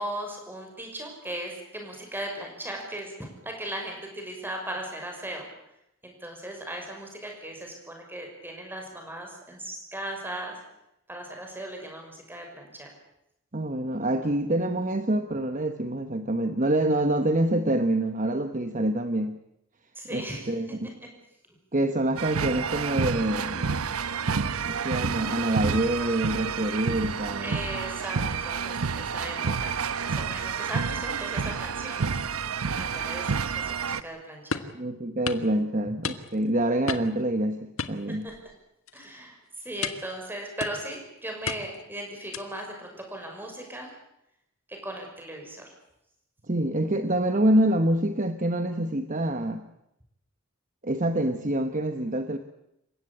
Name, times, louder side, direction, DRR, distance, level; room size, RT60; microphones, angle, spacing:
voice 1, 0.0-3.1 3.4-5.5 6.0-10.5 11.1-12.9 19.9-20.5 27.4-32.1 32.8-34.7 38.2-38.3 38.9-43.9 44.7-45.7, right 1 dB, 10° right, 2 dB, 6.0 m, -37 dB
voice 2, 13.5-19.4 20.1-20.9 21.7-23.8 24.6-27.6 34.7-38.3 46.5-49.6 50.8-52.4, right 1 dB, 35° right, 8 dB, 1.1 m, -26 dB
sound 1, 22.2-34.0, right 5 dB, 90° right, 0.9 m, -29 dB
sound 2, 34.5-34.8 35.3-35.5 36.0-36.5 36.9-37.2 37.8-38.5 38.9-39.1 39.8-40.1 40.6-41.0 41.5-41.8 42.3-42.6, left 5 dB, 75° left, 1.5 m, -33 dB
28.0 x 16.0 x 8.7 m, 0.83 s
head